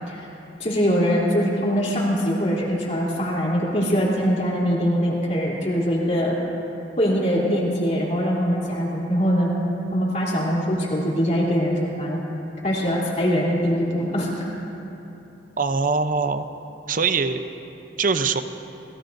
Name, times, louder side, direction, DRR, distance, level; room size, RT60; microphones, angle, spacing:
voice 1, 0.6-6.3 7.0-9.5 9.9-12.2 12.6-14.3, equal, 40° left, -5 dB, 3.4 m, -22 dB
voice 2, 15.6-16.5 16.9-17.4 18.0-18.4, right 4 dB, 50° right, 9 dB, 0.7 m, -22 dB
29.5 x 17.5 x 2.7 m, 3.0 s
head